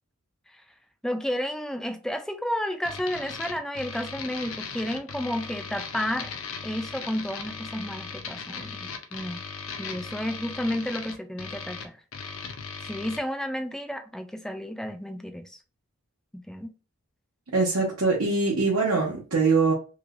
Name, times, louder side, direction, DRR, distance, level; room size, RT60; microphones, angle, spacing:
voice 1, 1.0-9.4 9.8-12.0 12.8-15.6 16.5-16.7, equal, ahead, 0.3 m, -32 dB
sound 1, 2.8-13.2, left 5 dB, 65° left, 0.6 m, -38 dB
voice 2, 17.5-19.7, right 4 dB, 75° right, 0.9 m, -23 dB
3.1 x 2.9 x 2.4 m
head